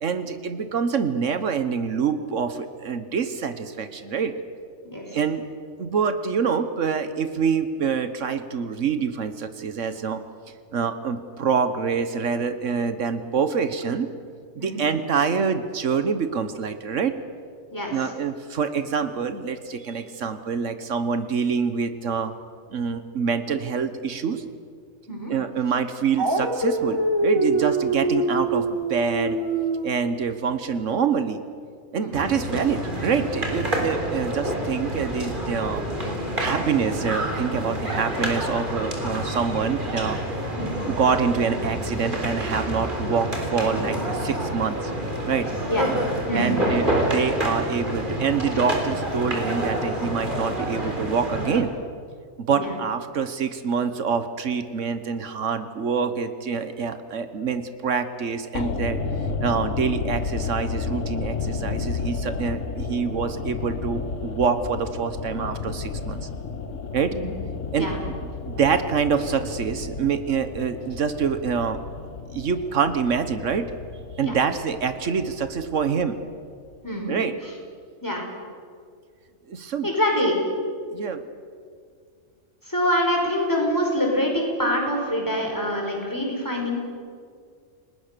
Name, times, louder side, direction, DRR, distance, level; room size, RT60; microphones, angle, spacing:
voice 1, 0.0-4.3 5.1-5.4 5.8-10.2 10.7-14.1 14.6-17.1 17.9-22.3 22.7-24.4 25.3-29.4 29.8-31.4 31.9-35.8 36.4-40.2 40.9-44.9 45.2-45.5 46.3-51.7 52.5-59.0 59.4-66.3 66.9-67.1 67.7-67.9 68.5-71.8 72.3-73.7 74.2-76.2 77.1-77.3 79.5-79.9 80.9-81.2, right 6 dB, 80° right, 10 dB, 1.5 m, -26 dB
voice 2, 17.7-18.1 25.1-25.3 32.0-32.1 40.6-40.7 45.7-45.9 46.3-46.5 52.5-52.8 67.1-67.3 67.8-68.0 74.2-74.4 76.8-77.2 77.4-77.5 78.0-78.2 79.8-80.4 82.6-86.7, equal, 15° left, 0 dB, 4.9 m, -25 dB
Dog, 26.2-29.9, right 2 dB, 20° right, 1.6 m, -24 dB
sound 1, 32.1-51.6, right 1 dB, 40° right, 3.7 m, -28 dB
sound 2, 58.5-76.7 77.0-77.1, left 5 dB, 80° left, 1.6 m, -32 dB
30.0 x 19.0 x 6.8 m, 2.1 s
omnidirectional pair, 1.3 m